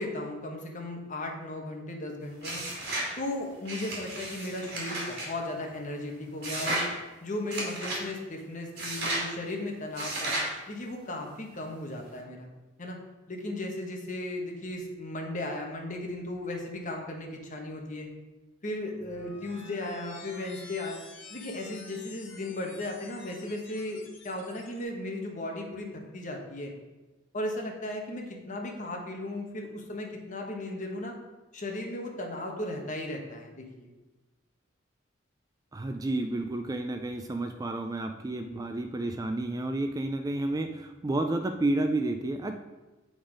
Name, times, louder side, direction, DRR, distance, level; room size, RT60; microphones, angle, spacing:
voice 1, 0.0-2.6 3.2-6.9 7.2-10.3 10.7-12.5 12.8-13.0 13.3-18.1 18.6-21.0 21.3-26.7 27.3-31.1 31.5-33.9, left 1 dB, 40° left, 1 dB, 1.1 m, -36 dB
sound 1, 2.4-3.1 3.6-5.3 6.4-6.9 7.5-8.0 8.8-9.3 9.9-10.5, right 1 dB, 55° right, 2.5 m, -33 dB
sound 2, 18.9-24.8, left 3 dB, 70° left, 1.2 m, -49 dB
voice 2, 35.7-42.5, right 2 dB, 20° right, 6 dB, 0.3 m, -31 dB
7.9 x 4.0 x 5.0 m, 1.1 s
head